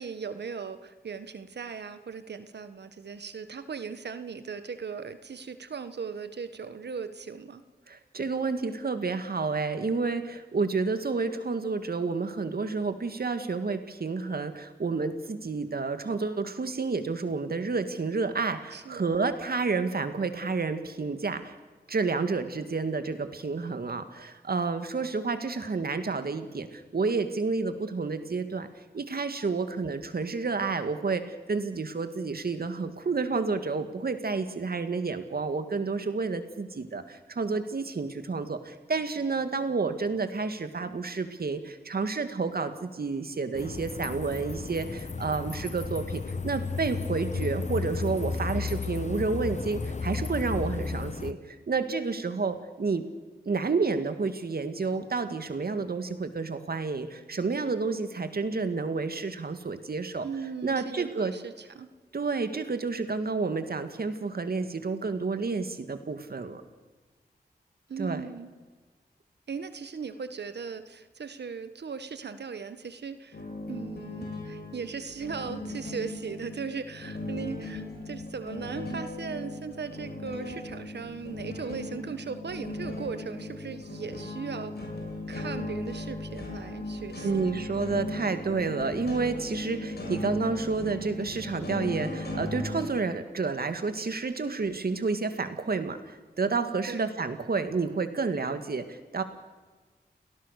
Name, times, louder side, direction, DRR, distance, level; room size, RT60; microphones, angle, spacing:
voice 1, 0.0-7.6 18.7-19.1 47.3-47.6 60.2-61.9 67.9-68.5 69.5-73.4 73.7-84.9 85.3-87.4 96.8-97.1, right 5 dB, 85° right, 11 dB, 1.4 m, -38 dB
voice 2, 7.9-21.5 21.9-28.7 28.9-53.0 53.5-60.3 60.6-61.3 62.1-66.6 68.0-68.2 87.2-99.2, right 4 dB, 65° right, 9 dB, 2.1 m, -30 dB
sound 1, 43.5-51.3, left 4 dB, 45° left, 0.9 m, -33 dB
sound 2, 73.3-92.8, left 2 dB, 70° left, 6.1 m, -37 dB
29.5 x 18.5 x 6.7 m, 1.3 s
wide cardioid pair, 65°, 17 cm